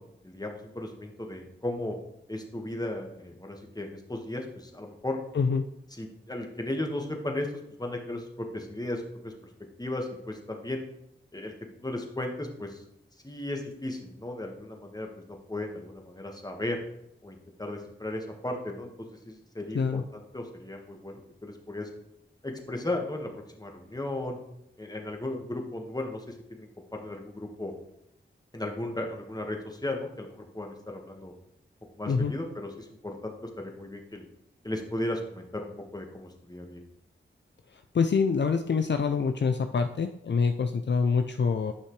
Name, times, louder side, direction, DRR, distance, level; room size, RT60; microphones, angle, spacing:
voice 1, 0.0-1.9 2.3-5.2 6.0-9.3 9.8-10.8 11.3-11.5 11.8-12.8 13.2-16.8 17.2-18.9 19.2-21.9 22.4-23.3 23.6-24.4 24.8-27.7 28.5-31.3 31.9-34.2 34.6-36.8, left 1 dB, 20° left, 2 dB, 1.5 m, -36 dB
voice 2, 5.3-5.7 19.7-20.0 32.1-32.4 37.7-41.7, left 5 dB, 60° left, 7 dB, 0.4 m, -26 dB
10.0 x 5.7 x 3.2 m, 0.80 s
cardioid pair, 40°, 21 cm